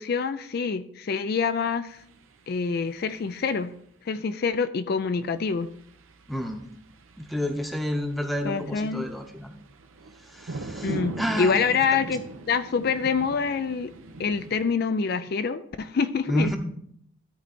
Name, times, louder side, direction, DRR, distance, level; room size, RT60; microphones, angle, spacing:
voice 1, 0.0-2.0 2.5-3.7 4.0-5.7 8.4-9.1 10.8-12.2 12.5-13.9 14.2-16.6, left 5 dB, 50° left, 11 dB, 0.3 m, -26 dB
sound 1, 1.9-3.8 5.1-14.6, right 2 dB, 90° right, 0.9 m, -41 dB
voice 2, 6.3-6.6 7.2-9.5 10.2-11.7 16.3-16.6, equal, ahead, 5 dB, 0.8 m, -29 dB
13.5 x 4.5 x 4.3 m, 0.68 s
head